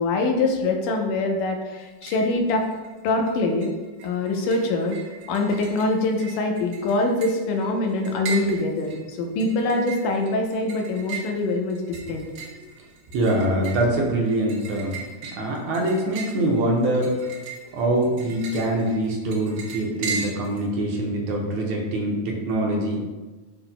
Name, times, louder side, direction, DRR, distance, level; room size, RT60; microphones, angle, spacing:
voice 1, 0.0-2.7 3.0-3.7 4.0-5.0 5.3-12.3, left 2 dB, 90° left, 2 dB, 2.5 m, -24 dB
sound 1, 1.8-2.3 2.6-3.3 3.6-20.7, right 5 dB, 90° right, 2.5 m, -38 dB
voice 2, 13.1-15.0 15.4-17.1 17.7-23.0, right 1 dB, 70° right, -1 dB, 2.1 m, -24 dB
12.0 x 4.2 x 2.2 m, 1.2 s
omnidirectional pair, 3.6 m